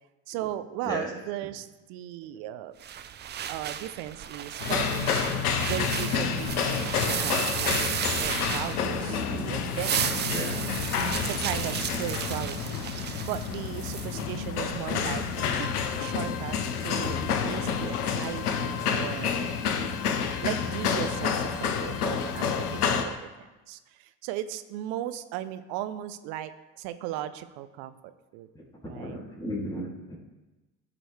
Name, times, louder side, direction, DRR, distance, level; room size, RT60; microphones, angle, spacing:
voice 1, 0.3-2.7 3.5-5.3 5.6-7.9 8.2-10.8 11.2-15.2 15.6-15.7 16.0-16.6 16.8-19.4 20.4-26.5 26.8-28.5 28.9-29.2, right 12 dB, 65° right, 12 dB, 0.7 m, -37 dB
sound 1, 2.8-9.2 9.6-14.2, right 9 dB, 25° right, 0.4 m, -33 dB
sound 2, 4.6-23.0, left 6 dB, 85° left, 0.8 m, -29 dB
voice 2, 9.1-9.6 10.3-10.7 28.9-30.2, equal, 10° left, -6 dB, 2.7 m, -35 dB
sound 3, 15.3-23.1, left 11 dB, 35° left, 0.7 m, -41 dB
14.5 x 4.9 x 3.3 m, 1.1 s
hypercardioid pair, 60°, 44 cm